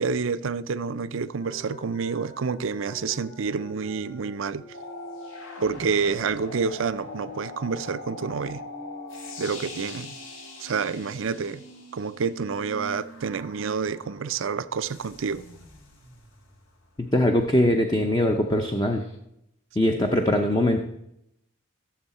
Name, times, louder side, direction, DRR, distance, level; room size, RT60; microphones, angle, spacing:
voice 1, 0.0-4.6 5.6-8.6 9.4-10.2 10.6-11.7 11.9-15.4, right 5 dB, 75° right, 0.5 m, -28 dB
sound 1, 1.4-13.9 14.2-14.3 14.7-17.4, equal, 45° left, 2.7 m, -46 dB
sound 2, 4.7-12.3 13.0-16.0 18.7-19.2, left 3 dB, 80° left, 1.8 m, -42 dB
voice 2, 17.0-19.0 19.8-20.8, left 1 dB, 20° left, 0.6 m, -22 dB
15.0 x 7.2 x 4.2 m
head